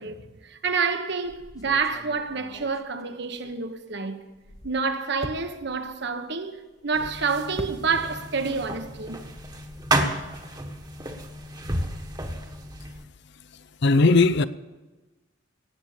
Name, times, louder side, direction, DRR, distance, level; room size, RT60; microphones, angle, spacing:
voice 1, 0.0-4.2 4.6-9.2, right 5 dB, 60° right, 1.2 m, -28 dB
sound 1, 1.2-3.9 4.3-8.4 8.6-9.9, left 1 dB, 20° left, 0.9 m, -44 dB
sound 2, 6.9-13.0, right 1 dB, 20° right, 1.4 m, -31 dB
voice 2, 13.8-14.4, left 3 dB, 55° left, 0.6 m, -17 dB
18.5 x 8.1 x 7.2 m
head